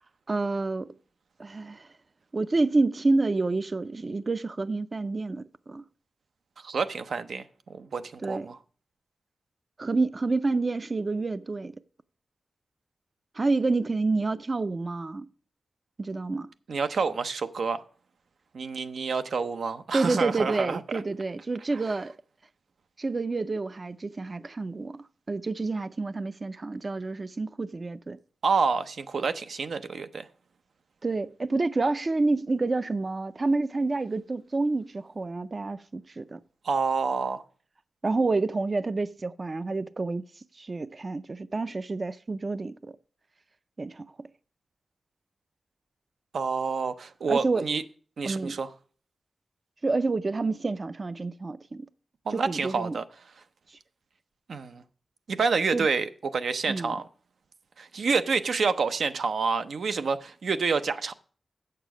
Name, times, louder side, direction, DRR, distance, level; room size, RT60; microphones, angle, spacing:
voice 1, 0.3-0.9 1.4-1.9 2.3-5.8 8.2-8.5 9.8-11.7 13.4-15.3 16.0-16.5 19.9-22.1 23.0-28.2 31.0-36.4 38.0-40.2 40.5-42.9 43.8-44.1 47.3-47.6 48.2-48.6 49.8-51.9 52.3-53.0 53.7-53.8 55.7-55.9 56.7-56.9, right 3 dB, 40° right, 0.3 m, -28 dB
voice 2, 6.6-8.6 16.7-17.8 18.5-20.8 28.4-30.3 36.6-37.4 46.3-47.8 48.2-48.7 52.3-53.0 54.5-54.8 55.3-57.1 57.8-61.1, right 5 dB, 90° right, 0.6 m, -28 dB
8.0 x 6.7 x 6.1 m
wide cardioid pair, 130°, 0 cm